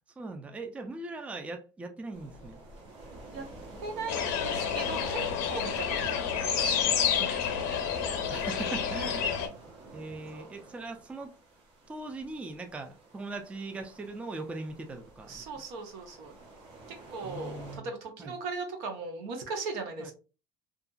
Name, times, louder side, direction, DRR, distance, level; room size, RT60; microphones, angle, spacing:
voice 1, 0.2-2.6 8.3-9.4 9.9-11.3 11.9-15.4 17.2-17.9 18.2-18.3 20.0-20.1, right 2 dB, 10° right, 5 dB, 0.3 m, -40 dB
sound 1, 2.1-17.8, right 2 dB, 55° right, 1.0 m, -49 dB
voice 2, 3.8-7.4 8.8-9.7 10.3-10.5 15.3-16.3 16.9-20.1, right 3 dB, 80° right, 5 dB, 0.8 m, -39 dB
sound 2, 4.1-9.5, left 8 dB, 90° left, 0.6 m, -29 dB
2.7 x 2.4 x 2.3 m, 0.34 s
supercardioid pair, 120°, 11 cm